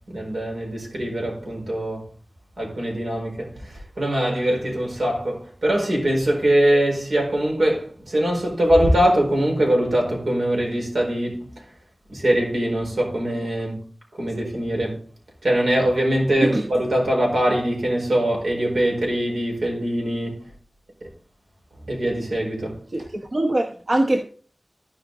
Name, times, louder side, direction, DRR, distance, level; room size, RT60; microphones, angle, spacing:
voice 1, 0.1-2.1 2.6-11.5 12.1-13.8 14.2-15.0 15.4-20.4 21.0-21.1 21.9-22.8, right 1 dB, 90° right, 4.4 m, -22 dB
voice 2, 23.3-24.2, right 1 dB, 60° right, 1.3 m, -21 dB
15.0 x 5.3 x 3.9 m
wide cardioid pair, 50°, 0 cm